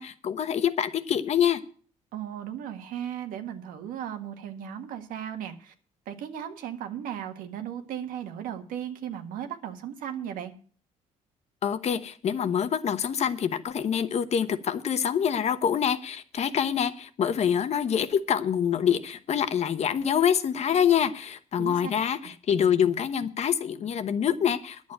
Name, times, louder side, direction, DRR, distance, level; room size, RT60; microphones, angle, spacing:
voice 1, 0.0-1.6 11.6-24.9, left 8 dB, 50° left, 11 dB, 1.1 m, -26 dB
voice 2, 2.1-5.7 6.0-10.5 21.6-21.9, right 9 dB, 90° right, 6 dB, 1.7 m, -36 dB
10.5 x 7.4 x 8.9 m, 0.43 s
cardioid pair, 115°, 14 cm